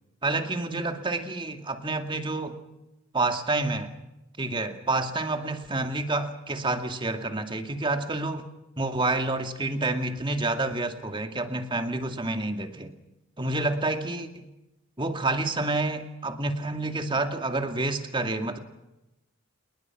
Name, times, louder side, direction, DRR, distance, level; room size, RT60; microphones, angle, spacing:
voice 1, 0.2-2.6 3.1-3.9 4.4-8.5 8.8-12.9 13.4-14.4 15.0-18.6, right 2 dB, 25° right, 6 dB, 2.2 m, -28 dB
28.5 x 21.0 x 6.0 m, 0.95 s
head